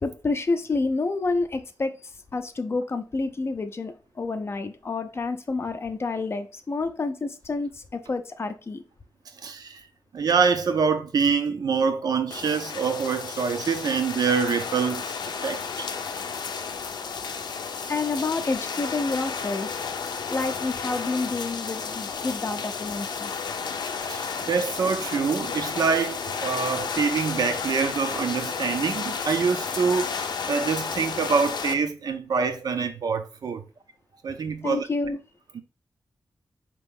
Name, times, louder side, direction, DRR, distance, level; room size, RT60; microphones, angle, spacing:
voice 1, 0.0-8.8 17.9-19.8 20.3-23.3 34.6-35.2, left 3 dB, 35° left, 0.5 m, -29 dB
voice 2, 9.4-9.8 10.1-15.1 15.4-15.9 23.8-33.6 34.2-34.9 35.5-35.6, right 5 dB, 65° right, 0.6 m, -25 dB
sound 1, 12.3-31.7, left 5 dB, 85° left, 0.5 m, -32 dB
4.5 x 3.0 x 3.5 m
wide cardioid pair, 155°, 7 cm